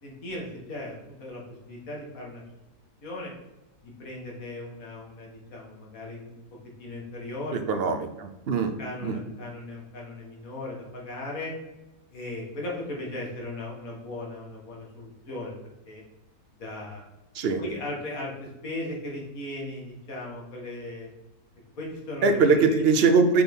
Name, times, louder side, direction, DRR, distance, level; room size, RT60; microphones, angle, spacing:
voice 1, 0.0-2.4 3.0-3.3 3.8-6.4 6.8-7.6 8.8-11.5 12.1-15.6 15.9-16.0 16.6-17.0 17.6-21.1 21.8-22.8, left 2 dB, 65° left, -2 dB, 2.0 m, -37 dB
voice 2, 7.5-8.7 9.0-9.2 17.3-17.6 22.2-23.4, right 4 dB, 55° right, 7 dB, 0.7 m, -22 dB
5.8 x 4.2 x 5.3 m, 0.99 s
omnidirectional pair, 1.6 m